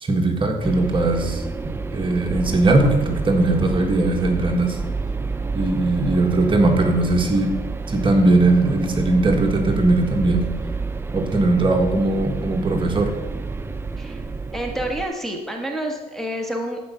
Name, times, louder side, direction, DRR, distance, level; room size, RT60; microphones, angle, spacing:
voice 1, 0.0-1.4 1.9-4.8 5.5-7.5 7.9-10.5 11.1-13.1, right 2 dB, 30° right, 3 dB, 1.5 m, -19 dB
sound 1, 0.6-15.1, right 4 dB, 15° right, 0.5 m, -29 dB
voice 2, 14.5-16.8, right 1 dB, ahead, 0 dB, 1.5 m, -28 dB
14.5 x 5.1 x 5.7 m, 1.1 s
cardioid pair, 110°, 17 cm